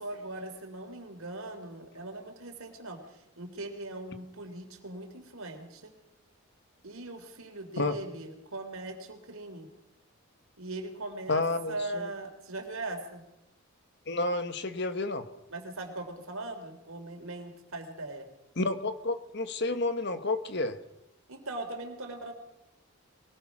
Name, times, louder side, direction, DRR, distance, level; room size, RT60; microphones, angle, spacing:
voice 1, 0.0-5.9 6.8-9.7 10.6-13.2 15.5-18.3 21.3-22.3, right 2 dB, 75° right, 5 dB, 3.5 m, -40 dB
voice 2, 11.3-12.1 14.1-15.3 18.6-20.8, left 2 dB, 50° left, 10 dB, 1.5 m, -30 dB
23.5 x 19.5 x 6.1 m, 0.86 s
head